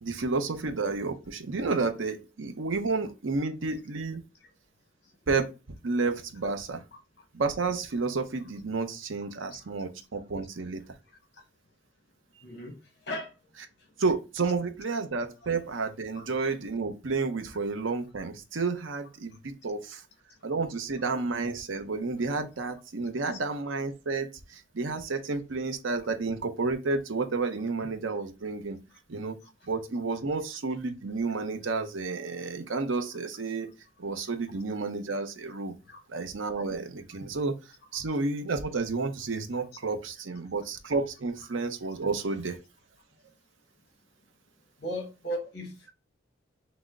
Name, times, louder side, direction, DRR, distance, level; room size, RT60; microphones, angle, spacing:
voice 1, 0.0-4.2 5.3-5.5 5.8-6.8 7.3-10.8 14.0-20.0 20.4-28.8 29.1-29.4 29.7-33.7 34.0-35.7 36.1-37.6 37.9-42.6, right 4 dB, 85° right, 0.7 m, -31 dB
voice 2, 12.4-12.7 13.1-13.3 16.1-16.2 35.9-36.0 44.8-45.9, equal, 55° left, 1.3 m, -36 dB
6.1 x 2.1 x 3.6 m
head